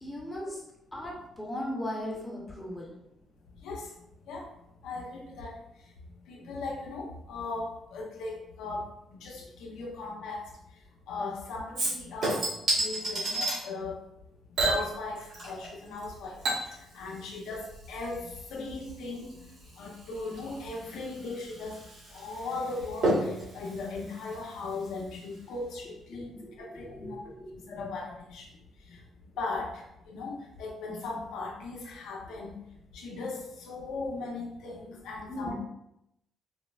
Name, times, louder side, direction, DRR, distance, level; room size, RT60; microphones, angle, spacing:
voice 1, 0.0-0.6 0.9-2.9 26.1-27.8 35.3-35.5, left 1 dB, 20° left, -2 dB, 0.8 m, -38 dB
voice 2, 4.8-5.5 6.3-8.9 9.2-10.4 11.1-12.5 12.7-14.0 14.7-19.3 19.8-21.8 22.1-27.2 27.7-28.5 28.9-29.0 29.4-32.5 32.9-35.5, left 3 dB, 90° left, -1 dB, 0.6 m, -38 dB
Chink clink / Liquid, 11.7-13.6 14.5-15.7 16.0-25.0 25.3-25.4, right 1 dB, 70° right, 1.4 m, -33 dB
4.2 x 2.0 x 2.3 m, 0.82 s
cardioid pair, 90°, 0 cm